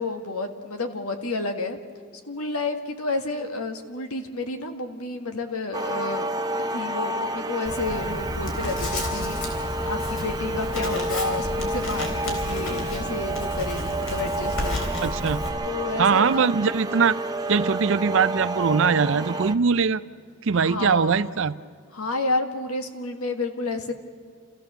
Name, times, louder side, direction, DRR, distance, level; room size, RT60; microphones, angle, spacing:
voice 1, 0.0-1.8 2.2-6.3 6.7-9.4 9.9-14.9 15.7-16.5 20.5-21.4 21.9-23.9, left 2 dB, 85° left, 1.7 m, -30 dB
sound 1, 5.7-19.5, right 1 dB, 15° right, 0.6 m, -30 dB
Writing, 7.6-15.5, left 1 dB, 65° left, 3.9 m, -32 dB
voice 2, 15.0-15.4 16.0-17.2 17.5-20.0 20.4-21.5, right 5 dB, 60° right, 0.5 m, -21 dB
28.5 x 15.0 x 6.9 m
head